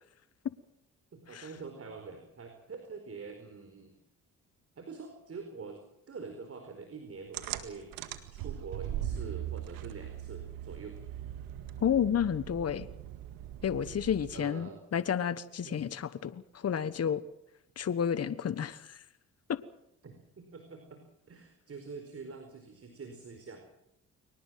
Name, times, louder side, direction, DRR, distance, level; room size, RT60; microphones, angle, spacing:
voice 1, 1.1-3.9 4.8-5.8 6.1-11.0 14.3-14.8 15.6-15.9 20.0-21.0 21.3-23.6, right 4 dB, 45° right, 6 dB, 4.6 m, -45 dB
sound 1, 7.3-14.5, right 11 dB, 90° right, 1.9 m, -40 dB
voice 2, 11.8-12.9 13.6-17.2 17.8-19.0 19.5-19.6, left 8 dB, 45° left, 14 dB, 1.3 m, -31 dB
23.0 x 19.5 x 7.7 m, 0.81 s
supercardioid pair, 65°, 33 cm